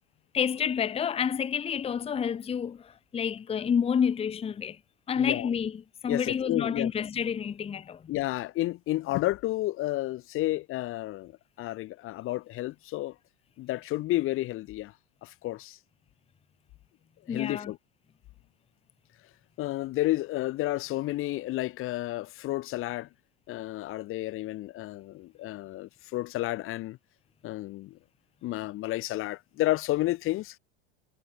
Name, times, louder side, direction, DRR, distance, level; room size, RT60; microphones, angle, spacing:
voice 1, 0.3-4.8 5.1-8.0 17.3-17.7, left 7 dB, 20° left, 1.0 m, -29 dB
voice 2, 5.2-5.5 6.1-6.9 8.1-11.3 11.6-13.1 13.6-14.9 15.2-15.8 17.3-17.8 19.6-23.1 23.5-27.0 27.4-28.0 28.4-30.6, left 16 dB, 40° left, 1.1 m, -31 dB
supercardioid pair, 130°, 33 cm